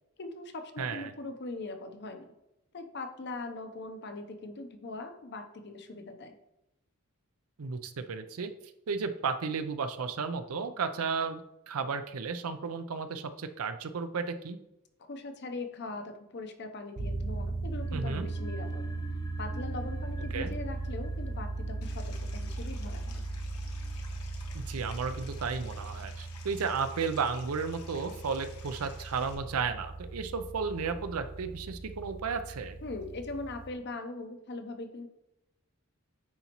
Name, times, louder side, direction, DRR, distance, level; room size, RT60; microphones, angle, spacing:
voice 1, 0.2-2.3 2.7-6.4 15.0-18.9 19.4-23.2 32.8-35.1, left 2 dB, 50° left, 7 dB, 0.7 m, -41 dB
voice 2, 0.8-1.1 7.6-8.5 8.9-14.6 17.9-18.3 20.3-20.5 24.5-32.8, right 5 dB, 80° right, 10 dB, 0.5 m, -33 dB
sound 1, 17.0-33.7, right 2 dB, 40° right, 0.6 m, -38 dB
sound 2, 17.7-24.7, left 2 dB, 15° left, 0.4 m, -51 dB
Stream, 21.8-29.3, left 5 dB, 90° left, 1.1 m, -53 dB
9.5 x 4.0 x 3.0 m, 0.89 s
head